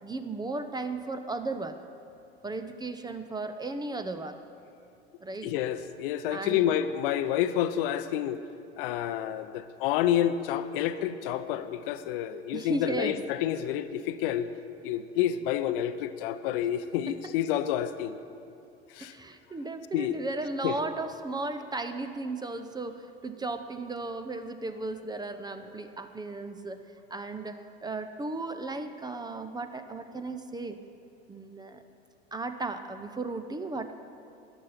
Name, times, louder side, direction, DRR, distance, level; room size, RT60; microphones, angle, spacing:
voice 1, 0.0-1.8 2.4-4.4 5.2-5.5 6.3-6.7 12.5-13.2 17.1-17.3 19.0-26.8 27.1-30.8 31.3-31.8 32.3-33.9, right 3 dB, 10° right, 9 dB, 0.7 m, -35 dB
voice 2, 5.4-8.4 8.8-14.5 14.8-18.2 18.9-19.1 19.9-20.2 20.6-20.8, left 11 dB, 55° left, 12 dB, 0.7 m, -29 dB
14.0 x 10.5 x 5.7 m, 2.8 s
figure-of-eight pair, 75°, 33 cm